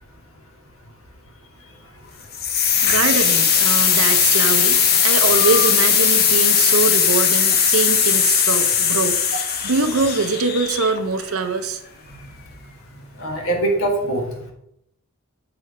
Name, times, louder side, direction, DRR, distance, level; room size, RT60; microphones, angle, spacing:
sound 1, 2.3-11.2, left 7 dB, 45° left, 0.7 m, -18 dB
voice 1, 2.8-11.8, right 4 dB, 75° right, 9 dB, 0.6 m, -23 dB
voice 2, 13.2-14.5, right 1 dB, 70° left, 2 dB, 1.3 m, -23 dB
7.0 x 3.2 x 4.8 m, 0.78 s
head